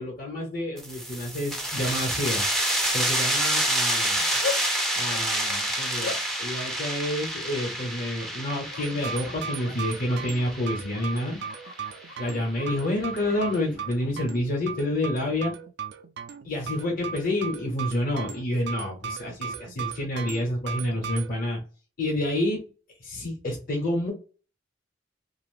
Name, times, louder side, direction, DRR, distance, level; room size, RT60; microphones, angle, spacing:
voice 1, 0.0-2.5 2.9-4.2 4.9-11.4 12.2-15.5 16.4-21.6 22.0-22.7 23.0-24.1, left 1 dB, 50° left, 1 dB, 1.1 m, -29 dB
sound 1, 0.8-12.1, right 1 dB, ahead, 0.5 m, -28 dB
Bark, 3.7-15.0, left 5 dB, 80° left, 0.9 m, -42 dB
sound 2, 8.8-21.3, right 6 dB, 60° right, 0.4 m, -37 dB
2.7 x 2.3 x 3.5 m, 0.36 s
head